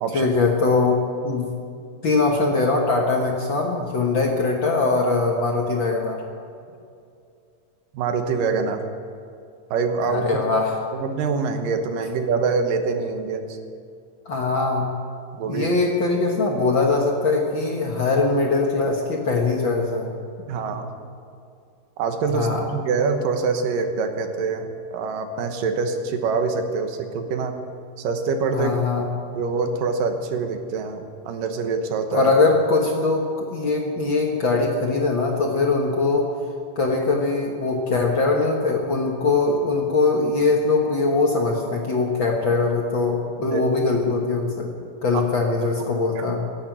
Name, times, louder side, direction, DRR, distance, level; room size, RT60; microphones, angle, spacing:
voice 1, 0.1-1.5 2.0-6.2 10.0-10.8 14.2-14.9 15.5-20.1 22.3-22.6 28.5-29.1 32.1-36.3 36.7-44.7 45.0-46.4, left 3 dB, 50° left, 0 dB, 1.6 m, -21 dB
voice 2, 7.9-8.9 9.7-10.4 10.9-13.6 15.3-15.7 20.5-21.0 22.0-27.6 28.0-28.7 29.3-32.3 43.5-43.6 45.1-45.2, right 4 dB, 85° right, 6 dB, 2.9 m, -25 dB
16.5 x 9.0 x 9.2 m, 2.4 s
omnidirectional pair, 3.8 m